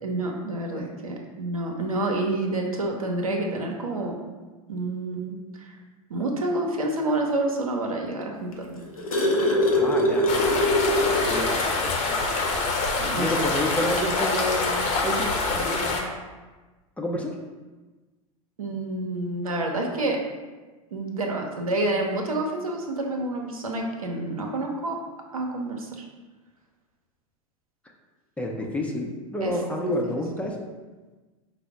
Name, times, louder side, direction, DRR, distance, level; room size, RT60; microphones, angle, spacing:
voice 1, 0.0-4.1 4.7-5.7 6.1-8.8 11.2-11.3 13.0-13.5 18.6-20.2 20.9-25.0 25.3-26.0 29.4-29.5, right 2 dB, 85° right, 1 dB, 0.7 m, -28 dB
sound 1, 8.5-11.4 11.8-11.9 12.3-12.5 13.7-13.8, left 1 dB, 85° left, 0.7 m, -23 dB
voice 2, 9.7-10.4 11.2-11.8 13.2-16.1 17.0-17.4 28.4-30.6, left 1 dB, 5° left, 0 dB, 0.6 m, -29 dB
sound 2, 10.3-16.0, left 3 dB, 40° left, 0.8 m, -25 dB
4.9 x 2.0 x 4.6 m, 1.3 s
hypercardioid pair, 95°, 18 cm